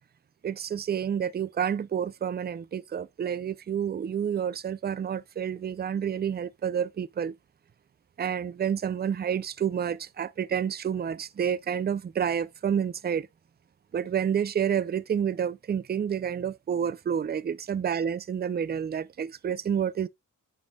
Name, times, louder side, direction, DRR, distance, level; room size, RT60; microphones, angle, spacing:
voice 1, 0.4-7.3 8.2-13.3 13.9-20.1, right 8 dB, 35° right, 0.4 m, -29 dB
9.0 x 5.3 x 2.2 m
wide cardioid pair, 120°, 31 cm